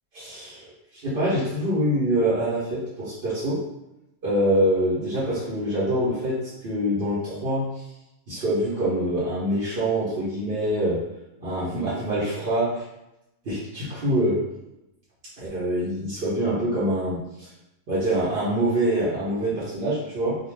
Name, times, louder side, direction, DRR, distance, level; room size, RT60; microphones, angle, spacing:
voice 1, 0.1-3.6 4.2-7.8 8.3-11.0 11.4-12.8 13.4-14.4 15.4-17.5 17.9-20.4, right 1 dB, 50° right, -10 dB, 0.8 m, -25 dB
2.4 x 2.2 x 3.2 m, 0.92 s
omnidirectional pair, 1.4 m